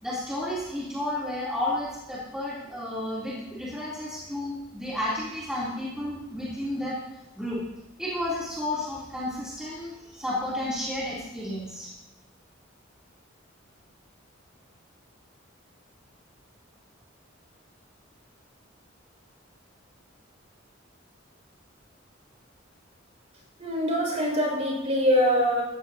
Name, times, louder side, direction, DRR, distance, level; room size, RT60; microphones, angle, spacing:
voice 1, 0.0-7.0 7.4-7.6 8.0-11.9, left 1 dB, 5° right, -8 dB, 2.9 m, -32 dB
voice 2, 23.6-25.6, equal, 35° right, -1 dB, 5.2 m, -23 dB
15.0 x 14.5 x 2.7 m, 0.93 s
head